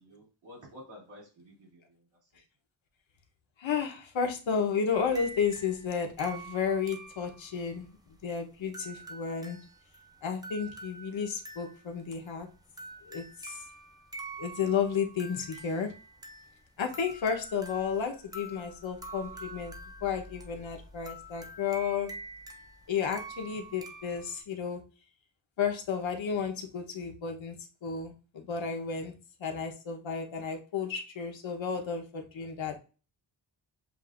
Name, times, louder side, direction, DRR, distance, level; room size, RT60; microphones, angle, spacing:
voice 1, 0.0-2.4, left 1 dB, 70° right, -4 dB, 2.4 m, -52 dB
voice 2, 3.6-9.6 10.2-12.5 13.0-13.6 14.4-16.0 16.8-19.7 20.0-22.1 22.9-24.8 25.6-27.5 27.8-29.1 29.4-32.8, left 6 dB, 80° left, 4 dB, 1.0 m, -32 dB
sound 1, 4.9-24.4, right 2 dB, 10° right, 0.5 m, -47 dB
7.5 x 2.5 x 2.5 m, 0.34 s
wide cardioid pair, 170°, 46 cm